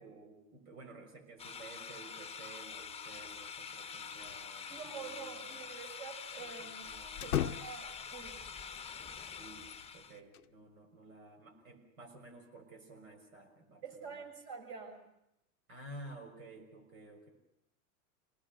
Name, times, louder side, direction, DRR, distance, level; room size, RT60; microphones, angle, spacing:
voice 1, 0.0-5.7 6.4-7.3 9.3-9.7 9.9-14.2 15.7-17.3, right 2 dB, 70° right, 5 dB, 6.4 m, -53 dB
sound 1, 1.4-10.2, left 6 dB, 15° left, 0.9 m, -46 dB
sound 2, 4.2-4.9 5.1-5.2 7.2-8.0 9.6-10.5, left 11 dB, 85° left, 0.7 m, -37 dB
voice 2, 4.7-6.9 7.2-8.5 13.8-15.0, right 6 dB, 50° right, 3 dB, 6.6 m, -47 dB
27.5 x 19.0 x 6.6 m, 0.84 s
hypercardioid pair, 100°, 43 cm